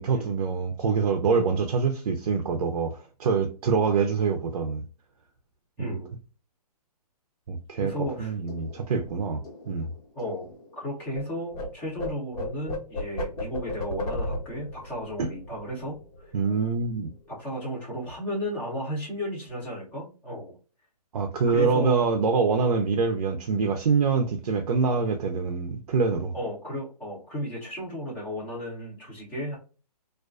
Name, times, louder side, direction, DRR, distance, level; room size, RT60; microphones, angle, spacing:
voice 1, 0.0-4.8 5.8-6.0 7.5-7.9 8.2-9.9 15.2-15.3 16.3-17.1 21.1-26.3, right 5 dB, 60° right, 0.5 m, -25 dB
voice 2, 5.8-6.1 7.8-8.3 10.1-10.4 10.8-16.3 17.3-20.5 21.5-22.1 26.3-29.6, equal, 5° left, 0.6 m, -34 dB
sound 1, 7.8-11.2 11.5-16.5 16.8-17.0 17.3-17.9, left 1 dB, 60° left, 1.1 m, -36 dB
2.4 x 2.3 x 2.3 m
hypercardioid pair, 170°, 21 cm